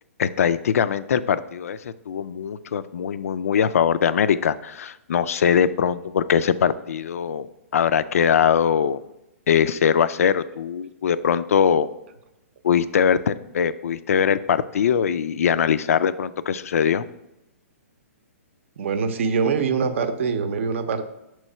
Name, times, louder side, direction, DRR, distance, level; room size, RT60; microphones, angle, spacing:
voice 1, 0.2-7.5 7.7-9.0 9.5-11.9 12.6-17.0, left 8 dB, 75° left, 15 dB, 0.3 m, -21 dB
voice 2, 18.8-21.0, right 5 dB, 60° right, 9 dB, 0.6 m, -24 dB
5.6 x 3.1 x 5.4 m, 0.91 s
hypercardioid pair, 150°, 8 cm